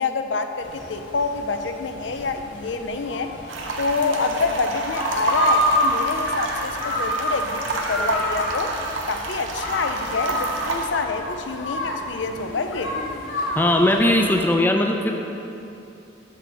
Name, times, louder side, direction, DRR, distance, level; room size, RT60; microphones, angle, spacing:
voice 1, 0.0-3.3 3.8-8.7 9.1-13.0, left 4 dB, 70° left, 7 dB, 0.5 m, -27 dB
sound 1, 0.6-14.4, left 1 dB, 85° left, 0.9 m, -29 dB
sound 2, 3.5-10.9, right 3 dB, 80° right, 0.9 m, -29 dB
voice 2, 13.6-15.1, left 1 dB, 10° left, 3 dB, 0.4 m, -19 dB
7.1 x 5.7 x 6.2 m, 2.8 s
head